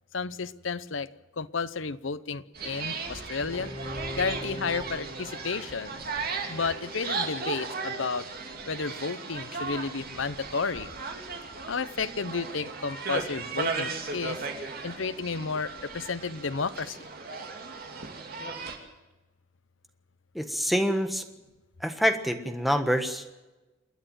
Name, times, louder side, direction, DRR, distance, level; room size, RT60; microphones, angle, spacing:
voice 1, 0.1-1.1 1.4-3.7 4.1-6.0 6.5-8.3 8.7-10.9 11.7-14.4 14.8-17.1, left 4 dB, 75° left, 15 dB, 0.8 m, -32 dB
sound 1, 2.5-18.8, right 4 dB, 50° right, 2.8 m, -36 dB
Bowed string instrument, 3.4-9.0, left 1 dB, 25° right, 6.9 m, -43 dB
voice 2, 20.3-21.2 21.8-23.3, equal, ahead, 6 dB, 1.4 m, -26 dB
28.0 x 10.5 x 9.2 m, 1.1 s
head